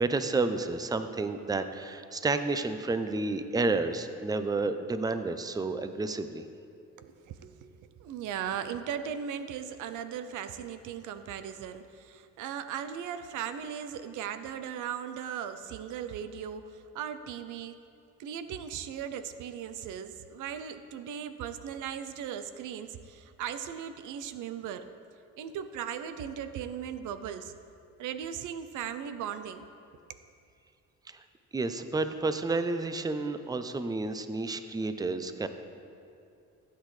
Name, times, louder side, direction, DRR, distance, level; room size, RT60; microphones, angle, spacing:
voice 1, 0.0-6.5 31.1-31.2 31.5-35.5, right 3 dB, 15° right, 9 dB, 0.5 m, -30 dB
voice 2, 7.0-17.8 18.2-24.9 25.4-27.5 28.0-29.7, right 8 dB, 85° right, 11 dB, 0.6 m, -38 dB
15.5 x 8.3 x 3.2 m, 2.5 s
cardioid pair, 90°, 30 cm